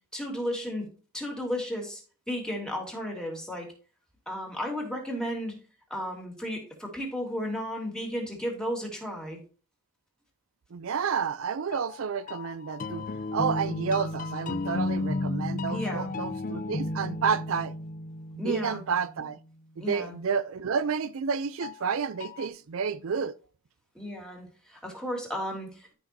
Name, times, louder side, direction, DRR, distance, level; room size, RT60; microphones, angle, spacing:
voice 1, 0.1-0.9 1.1-2.0 2.3-3.7 4.3-5.6 5.9-9.4 15.7-16.1 18.4-18.8 19.8-20.1 23.9-25.9, equal, 5° left, 3.0 m, -33 dB
voice 2, 10.7-13.1 13.3-17.8 18.3-19.4 19.8-23.3, right 6 dB, 70° right, 0.5 m, -30 dB
sound 1, 11.7-19.4 21.6-22.5, left 2 dB, 40° left, 0.5 m, -34 dB
13.5 x 6.2 x 2.7 m
head